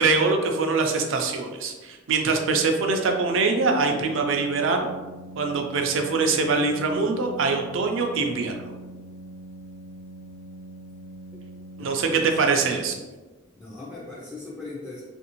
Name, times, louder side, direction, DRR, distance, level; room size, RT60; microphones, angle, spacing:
voice 1, 0.0-4.9 5.4-8.5 11.8-13.0, right 4 dB, 70° right, 4 dB, 0.5 m, -23 dB
Organ, 2.4-13.2, right 1 dB, 50° left, 0.8 m, -43 dB
voice 2, 11.8-12.3 13.5-15.0, left 3 dB, 10° left, -7 dB, 0.4 m, -39 dB
3.3 x 2.5 x 2.9 m, 1.2 s
head